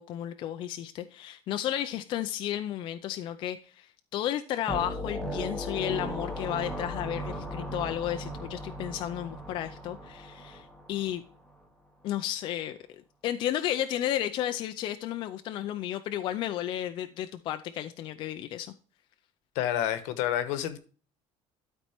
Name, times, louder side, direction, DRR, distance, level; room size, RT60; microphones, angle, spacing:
voice 1, 0.0-11.2 12.0-18.7, left 11 dB, 40° left, 0.5 m, -33 dB
sound 1, 4.7-11.1, equal, 5° left, 1.0 m, -37 dB
voice 2, 19.5-20.8, left 11 dB, 75° left, 1.2 m, -29 dB
12.5 x 4.3 x 4.3 m
cardioid pair, 175°, 13 cm